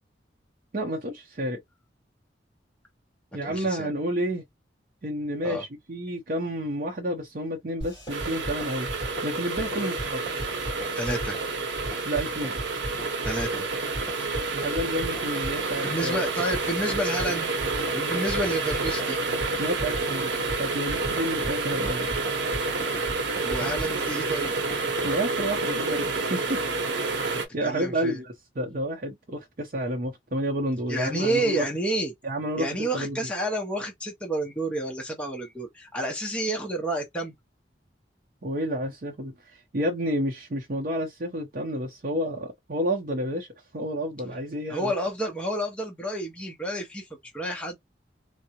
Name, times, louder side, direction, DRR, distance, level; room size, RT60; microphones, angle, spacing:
voice 1, 0.7-1.6 3.3-4.5 5.0-8.9 9.2-10.2 12.0-12.6 14.5-16.2 19.6-22.2 25.0-26.6 27.2-31.7 32.2-33.2 38.4-43.5 43.7-44.9, equal, 50° right, 0.6 m, -30 dB
voice 2, 3.4-3.9 5.4-5.6 11.0-11.4 13.2-13.7 15.8-17.5 17.9-19.2 23.4-24.5 27.3-28.2 30.9-32.1 32.6-37.3 44.7-47.8, right 1 dB, 5° left, 0.6 m, -30 dB
sound 1, 7.8-25.6, right 1 dB, 25° left, 2.3 m, -38 dB
sound 2, 8.1-27.5, right 3 dB, 80° right, 0.8 m, -29 dB
3.5 x 2.0 x 2.8 m
head